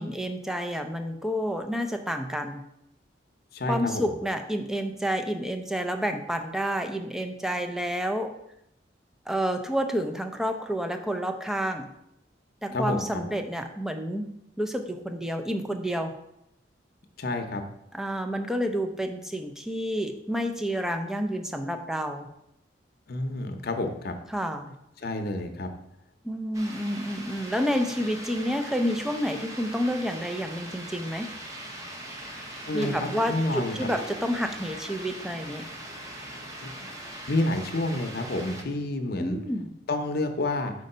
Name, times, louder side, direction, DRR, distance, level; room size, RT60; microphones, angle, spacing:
voice 1, 0.0-2.6 3.7-8.3 9.3-11.9 12.6-16.1 17.9-22.3 24.3-24.7 26.2-31.3 32.7-35.7 39.2-39.7, equal, 5° right, 5 dB, 0.4 m, -29 dB
voice 2, 3.5-4.0 12.7-13.2 17.2-17.6 23.1-24.1 25.0-25.7 32.7-33.7 36.6-36.7 37.3-39.4 39.9-40.7, left 2 dB, 55° left, 5 dB, 0.7 m, -29 dB
sound 1, 26.5-38.6, right 1 dB, 20° right, 0.9 m, -40 dB
5.1 x 3.8 x 5.4 m, 0.81 s
head